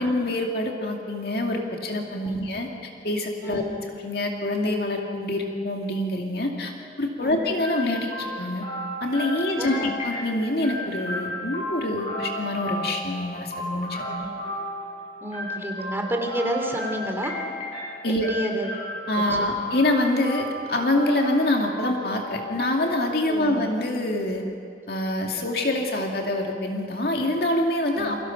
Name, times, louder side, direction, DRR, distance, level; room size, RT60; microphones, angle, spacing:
voice 1, 0.0-3.6 4.0-8.6 9.0-14.1 18.0-18.3 19.1-24.4 24.9-28.2, left 1 dB, 60° left, 1 dB, 2.3 m, -26 dB
sound 1, 7.6-23.4, left 1 dB, 35° left, 8.0 m, -34 dB
voice 2, 9.6-9.9 14.0-14.4 15.2-17.4 18.1-18.7 19.3-19.5 23.3-23.6 25.3-25.5 28.0-28.2, equal, 15° right, 2 dB, 2.7 m, -30 dB
29.0 x 23.0 x 5.9 m, 2.3 s
head